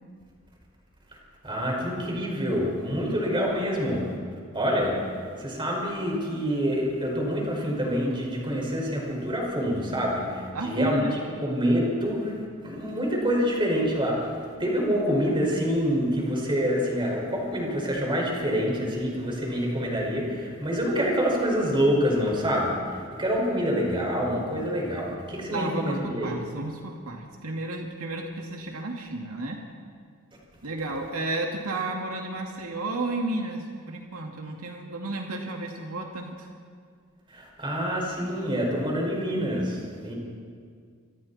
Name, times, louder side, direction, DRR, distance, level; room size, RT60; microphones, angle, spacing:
voice 1, 1.4-4.0 4.5-5.0 5.4-11.1 11.4-12.4 12.6-22.8 23.2-26.3 37.3-40.1, equal, 25° right, -1 dB, 5.4 m, -26 dB
voice 2, 10.5-11.1 25.5-29.6 30.6-36.5, right 2 dB, 85° right, 1 dB, 2.3 m, -32 dB
28.5 x 25.5 x 4.3 m, 2.1 s
head